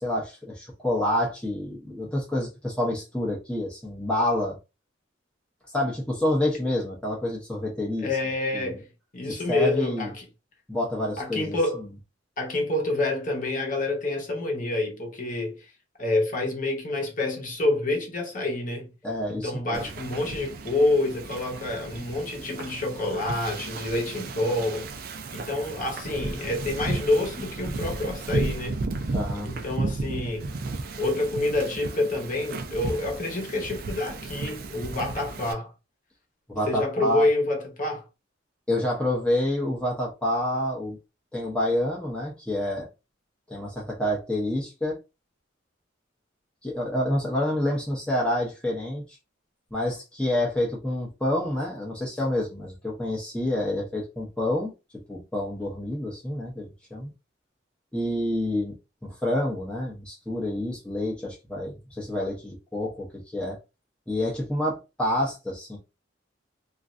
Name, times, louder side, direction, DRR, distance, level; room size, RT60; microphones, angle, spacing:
voice 1, 0.0-4.6 5.7-8.1 8.5-8.8 9.5-10.1 10.7-11.9 19.0-19.9 29.1-29.5 36.5-37.3 38.7-41.0 41.3-42.9 43.5-45.0 46.6-49.0 49.7-54.7 55.1-57.1 57.9-58.8 59.0-63.6 64.1-65.8, left 1 dB, 5° left, 0.6 m, -28 dB
voice 2, 8.0-8.9 9.1-10.2 11.2-11.8 12.4-15.6 16.0-18.9 19.4-24.9 25.3-28.9 29.4-30.5 31.0-35.7 36.7-38.0, left 2 dB, 40° left, 0.9 m, -27 dB
Wind / Ocean, 19.7-35.5, right 3 dB, 50° right, 0.4 m, -34 dB
3.1 x 2.5 x 2.4 m
head